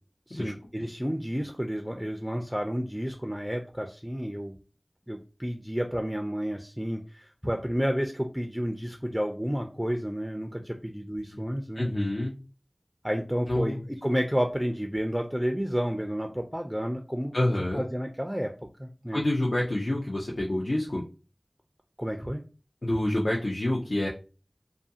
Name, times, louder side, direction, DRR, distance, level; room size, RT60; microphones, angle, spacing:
voice 1, 0.3-4.6 5.1-11.9 13.0-17.3 17.7-18.5 18.8-19.2 22.0-22.4, equal, 10° right, 3 dB, 0.3 m, -31 dB
voice 2, 11.8-12.3 13.5-13.8 17.3-17.9 19.1-21.0 22.8-24.1, left 1 dB, 75° left, -3 dB, 0.5 m, -27 dB
2.4 x 2.3 x 2.7 m, 0.33 s
wide cardioid pair, 45°, 0 cm